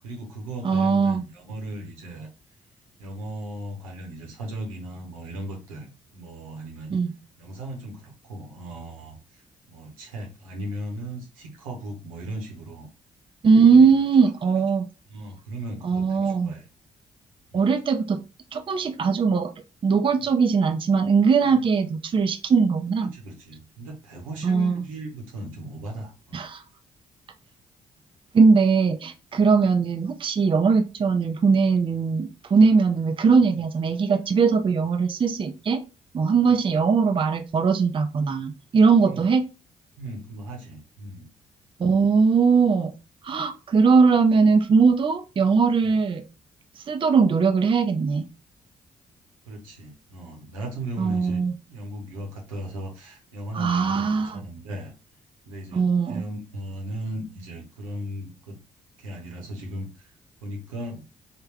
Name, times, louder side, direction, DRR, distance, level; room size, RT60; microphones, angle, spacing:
voice 1, 0.0-2.3 3.0-6.9 7.4-9.4 9.7-12.9 13.7-13.9 14.5-14.6 15.1-16.7 17.5-17.7 21.4-21.7 23.0-26.4 38.9-39.2 40.0-41.3 49.5-51.4 51.7-54.9 55.5-58.6 59.0-60.1 60.4-61.0, right 1 dB, 90° right, -1 dB, 0.8 m, -37 dB
voice 2, 0.6-1.2 6.9-7.1 13.4-14.8 15.8-16.5 17.5-18.2 18.5-19.5 19.8-23.1 24.4-24.7 26.3-26.6 28.3-35.8 36.1-39.4 41.8-42.9 43.2-46.2 46.9-48.2 51.0-51.5 53.5-54.4 55.7-56.3, right 5 dB, 30° right, 7 dB, 0.5 m, -20 dB
3.4 x 2.2 x 3.3 m, 0.30 s
hypercardioid pair, 45°, 17 cm